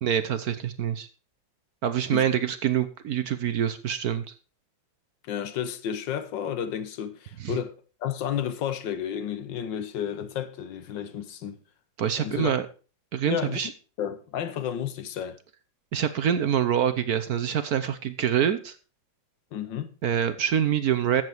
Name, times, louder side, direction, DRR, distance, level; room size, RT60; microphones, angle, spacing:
voice 1, 0.0-1.1 1.8-4.2 7.4-7.6 12.0-12.6 13.1-13.7 15.9-18.8 20.0-21.2, right 9 dB, 60° right, 1.1 m, -25 dB
voice 2, 5.3-11.6 12.2-12.5 13.2-13.6 14.0-15.4 19.5-19.9, left 9 dB, 70° left, 1.6 m, -32 dB
13.0 x 7.7 x 4.6 m
omnidirectional pair, 2.1 m